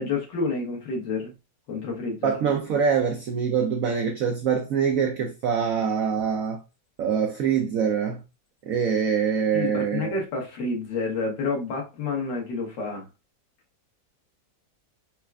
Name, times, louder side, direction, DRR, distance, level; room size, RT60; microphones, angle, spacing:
voice 1, 0.0-1.3 1.7-2.3 9.5-13.1, left 3 dB, 70° left, 1.7 m, -29 dB
voice 2, 2.2-6.6 7.0-8.2 8.7-10.2, right 7 dB, 80° right, 0.7 m, -24 dB
4.4 x 2.3 x 2.3 m
omnidirectional pair, 2.0 m